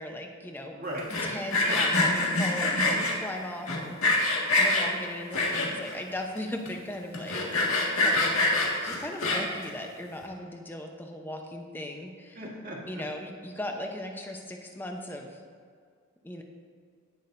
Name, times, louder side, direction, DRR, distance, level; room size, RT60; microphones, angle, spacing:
voice 1, 0.0-0.8 1.1-2.7 3.2-4.1 4.6-12.5 12.9-15.4 16.2-16.4, left 1 dB, 10° left, 2 dB, 0.8 m, -38 dB
voice 2, 0.7-1.3 1.6-1.8 2.8-3.1 12.3-13.0, right 1 dB, 45° right, -3 dB, 1.7 m, -36 dB
Sawing, 1.0-3.1 3.7-4.9 5.3-5.9 6.4-6.5 6.7-6.8 7.1-9.6, left 2 dB, 80° left, 1.9 m, -25 dB
18.0 x 6.3 x 2.6 m, 2.1 s
head